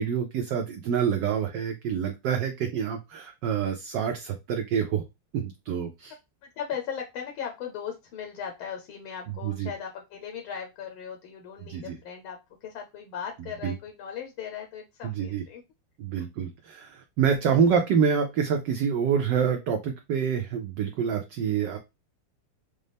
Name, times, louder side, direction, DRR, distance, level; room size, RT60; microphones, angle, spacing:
voice 1, 0.0-5.0 5.3-6.1 9.4-9.7 11.7-11.9 13.6-13.7 15.0-15.4 16.0-21.8, right 7 dB, 75° right, 4 dB, 1.0 m, -27 dB
voice 2, 6.1-15.6 16.1-16.2, left 8 dB, 75° left, 2 dB, 1.5 m, -38 dB
5.2 x 2.0 x 3.3 m, 0.24 s
omnidirectional pair, 2.4 m